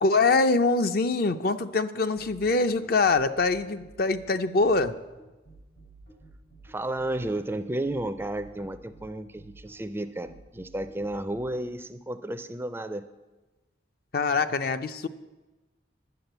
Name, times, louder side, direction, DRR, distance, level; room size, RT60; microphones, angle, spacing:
voice 1, 0.0-4.9 14.1-15.1, left 3 dB, 50° left, 10 dB, 0.5 m, -24 dB
sound 1, 2.2-11.6, right 3 dB, 85° left, 5.0 m, -52 dB
voice 2, 6.6-13.0, right 1 dB, 10° right, 10 dB, 0.4 m, -32 dB
10.5 x 7.4 x 7.9 m, 1.1 s
head